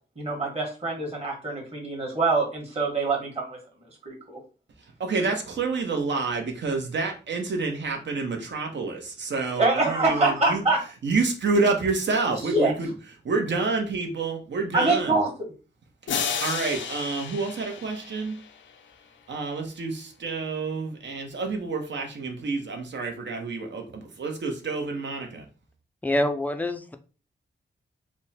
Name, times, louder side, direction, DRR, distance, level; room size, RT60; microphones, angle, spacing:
voice 1, 0.2-3.6 4.0-4.4 9.6-10.8 12.5-12.7 14.7-15.3, right 3 dB, 35° right, 1.3 m, -24 dB
voice 2, 5.0-10.6 11.0-12.9 13.2-15.2 16.2-18.4 19.3-25.4, right 4 dB, 70° right, 0.9 m, -28 dB
sound 1, 16.1-18.9, left 7 dB, 85° left, 0.5 m, -32 dB
voice 3, 26.0-27.0, left 1 dB, 10° left, 0.3 m, -25 dB
3.4 x 2.1 x 4.1 m
wide cardioid pair, 155°, 19 cm